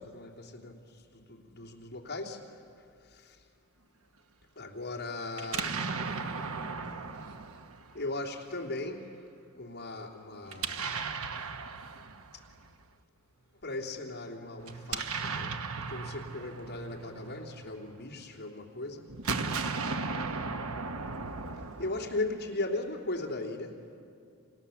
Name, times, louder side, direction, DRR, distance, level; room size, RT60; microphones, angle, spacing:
voice 1, 0.0-2.4 3.0-3.4 4.6-5.9 7.9-9.1 9.6-11.1 13.6-19.1 21.8-23.8, left 2 dB, 45° left, -1 dB, 3.1 m, -38 dB
Explosion, 5.3-8.4 10.5-12.7 14.6-18.0 19.1-22.5, right 4 dB, 70° right, 1.1 m, -36 dB
28.5 x 28.0 x 7.1 m, 2.4 s
head